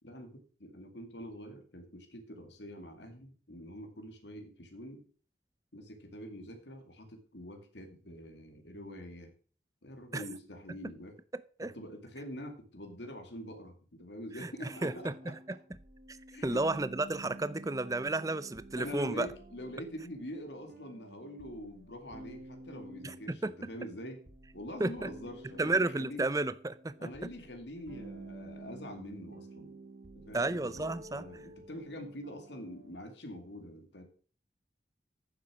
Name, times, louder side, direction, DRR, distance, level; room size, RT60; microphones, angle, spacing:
voice 1, 0.0-5.1 5.7-9.3 9.8-11.2 11.6-15.3 16.3-16.6 18.8-24.2 24.5-26.2 27.0-29.8 30.2-34.0, equal, 85° left, 2.3 m, -45 dB
voice 2, 11.3-11.7 14.4-14.5 14.8-15.3 16.1-16.2 16.4-19.3 23.0-23.5 24.8-25.1 25.6-26.9 30.3-31.2, right 2 dB, 20° right, 0.6 m, -32 dB
sound 1, 14.7-33.0, right 2 dB, 55° right, 1.4 m, -51 dB
9.6 x 7.3 x 6.0 m
head